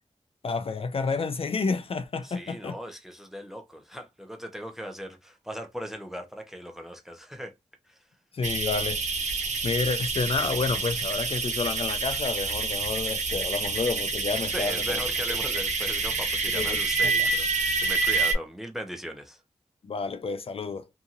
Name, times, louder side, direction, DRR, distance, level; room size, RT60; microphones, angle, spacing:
voice 1, 0.4-2.8 8.3-9.4 9.6-15.0 15.3-15.4 16.5-16.8 17.2-17.3 19.8-20.9, left 4 dB, 55° left, 0.4 m, -30 dB
voice 2, 2.2-7.5 7.9-8.0 14.5-19.4, equal, 5° right, 0.7 m, -38 dB
sound 1, 8.4-18.3, right 4 dB, 90° right, 0.8 m, -28 dB
2.8 x 2.6 x 2.5 m
wide cardioid pair, 80°, 12 cm